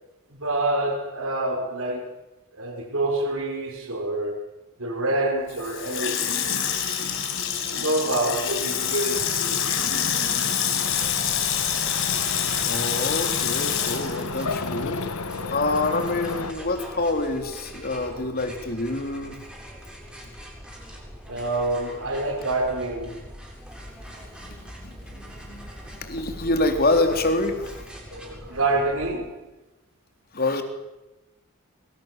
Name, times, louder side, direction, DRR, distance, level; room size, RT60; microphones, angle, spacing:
voice 1, 0.3-2.0 2.5-4.4 4.8-6.2 6.5-7.3 7.7-9.7 13.9-14.0 17.9-18.2 21.3-23.2 28.1-29.4, right 2 dB, 70° right, 3 dB, 5.0 m, -27 dB
Water tap faucet / Sink (filling or washing), 5.5-15.2 15.5-15.6, left 8 dB, 60° left, 5.2 m, -26 dB
sound 1, 9.1-16.5, left 3 dB, 85° left, 1.7 m, -34 dB
sound 2, 10.8-29.2, equal, 5° right, 7.8 m, -43 dB
voice 2, 12.6-15.0 15.5-19.4 24.4-27.8 30.3-30.6, left 2 dB, 45° left, 5 dB, 3.8 m, -26 dB
27.5 x 24.5 x 7.6 m, 1.0 s
head